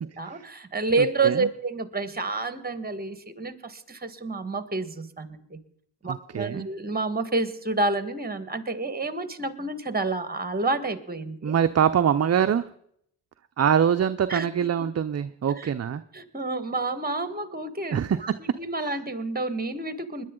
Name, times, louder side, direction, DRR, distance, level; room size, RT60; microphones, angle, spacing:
voice 1, 0.2-5.6 6.0-11.6 14.3-14.5 15.6-15.7 16.1-20.2, right 3 dB, 20° right, 10 dB, 1.6 m, -29 dB
voice 2, 6.1-6.7 11.4-12.7 13.6-16.0 17.9-18.2, right 8 dB, 40° right, 10 dB, 0.6 m, -23 dB
20.5 x 10.5 x 3.8 m, 0.68 s
cardioid pair, 60°, 42 cm